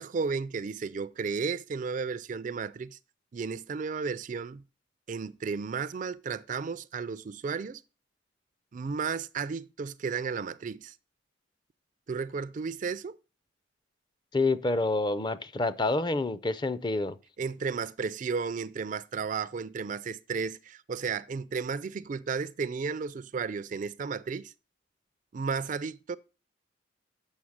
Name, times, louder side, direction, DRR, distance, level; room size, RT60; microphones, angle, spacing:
voice 1, 0.0-3.0 3.3-4.6 5.1-7.8 8.7-11.0 12.1-13.2 17.4-24.5 25.3-26.2, right 5 dB, 40° right, 0.4 m, -33 dB
voice 2, 14.3-17.2, left 2 dB, 25° left, 0.5 m, -28 dB
7.2 x 5.8 x 6.3 m
head